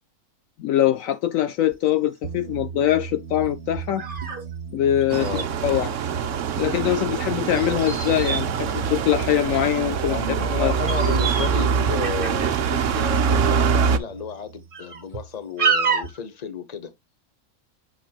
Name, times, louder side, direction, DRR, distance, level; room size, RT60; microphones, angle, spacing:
voice 1, 0.6-4.0 4.7-5.3 5.6-5.9 6.6-10.2 10.5-10.7, left 12 dB, 70° left, 0.9 m, -23 dB
sound 1, 1.1-1.2 1.7-1.9 2.5-2.6 3.4-4.4 4.7-4.8 5.0-5.5 7.5-9.6 10.3-10.5 10.7-11.6 11.8-12.7 13.3-13.5 14.1-14.2 14.7-15.2 15.6-16.2, right 6 dB, 35° right, 1.5 m, -28 dB
sound 2, 2.2-15.5, right 7 dB, 85° right, 1.2 m, -37 dB
sound 3, 5.1-14.0, right 6 dB, 65° right, 1.0 m, -24 dB
voice 2, 5.2-5.5 10.1-16.9, left 6 dB, 30° left, 1.0 m, -33 dB
7.3 x 5.8 x 2.4 m
omnidirectional pair, 1.5 m